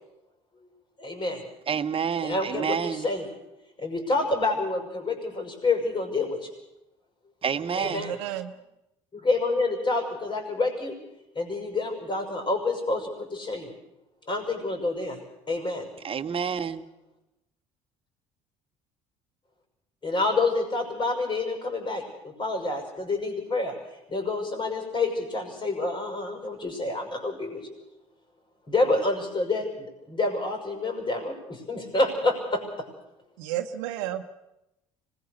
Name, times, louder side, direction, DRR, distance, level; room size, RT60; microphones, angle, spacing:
voice 1, 1.0-1.4 2.2-3.3 3.8-6.5 7.7-8.1 9.1-11.0 11.3-13.7 14.3-15.2 15.5-15.9 20.0-27.7 28.7-32.8, left 2 dB, 30° left, 6.2 m, -28 dB
voice 2, 1.7-3.1 7.4-8.0 16.0-16.9, right 7 dB, 35° right, 1.5 m, -28 dB
voice 3, 7.8-8.5 33.4-34.2, right 12 dB, 75° right, 1.1 m, -32 dB
25.5 x 20.5 x 6.7 m
hypercardioid pair, 60°, 16 cm